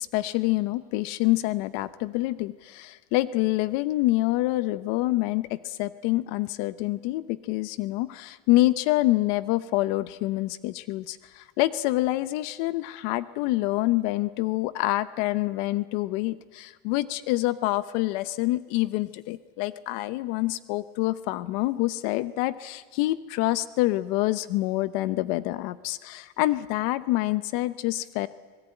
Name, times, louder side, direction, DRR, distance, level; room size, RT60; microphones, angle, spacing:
voice 1, 0.0-28.3, left 17 dB, 70° left, 15 dB, 0.9 m, -26 dB
26.0 x 19.0 x 9.0 m, 1.5 s
cardioid pair, 165°, 30 cm